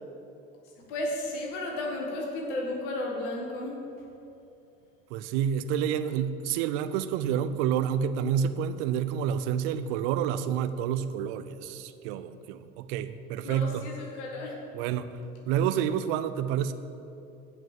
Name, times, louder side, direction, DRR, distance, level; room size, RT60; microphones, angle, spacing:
voice 1, 0.9-3.7 13.4-14.6, left 1 dB, 65° left, -1 dB, 1.8 m, -33 dB
voice 2, 5.1-13.9 14.7-15.1 15.5-16.7, right 9 dB, 60° right, 11 dB, 0.7 m, -29 dB
9.8 x 5.1 x 7.4 m, 2.8 s
figure-of-eight pair, 70°, 39 cm